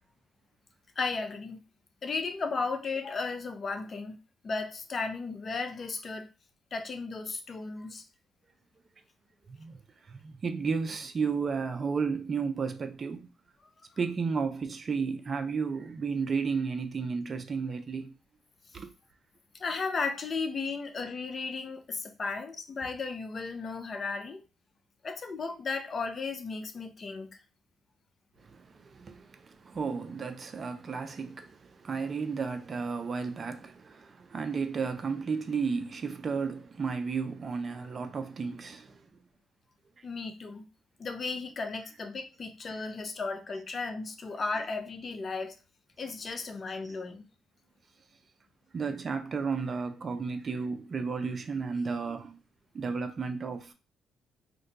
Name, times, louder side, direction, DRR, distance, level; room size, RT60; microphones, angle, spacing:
voice 1, 1.0-1.6 2.0-4.2 4.4-6.3 6.7-8.0 19.6-24.4 25.0-27.4 40.0-40.7 41.0-45.6 46.0-47.2, left 4 dB, 40° left, 0.5 m, -35 dB
voice 2, 10.1-13.3 14.0-18.1 18.7-18.9 28.5-39.0 48.7-52.4 52.7-53.7, right 5 dB, 40° right, 0.5 m, -33 dB
2.6 x 2.2 x 3.9 m
cardioid pair, 90°, 0 cm